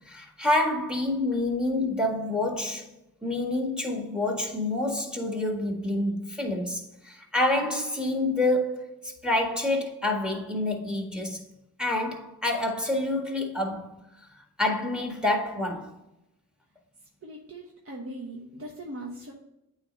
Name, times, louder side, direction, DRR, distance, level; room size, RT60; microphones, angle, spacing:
voice 1, 0.0-2.9 3.2-11.4 11.8-15.9, left 2 dB, ahead, 1.6 m, -28 dB
voice 2, 17.2-19.3, right 1 dB, 35° right, 1.2 m, -40 dB
8.7 x 3.2 x 4.0 m
cardioid pair, 50°, 38 cm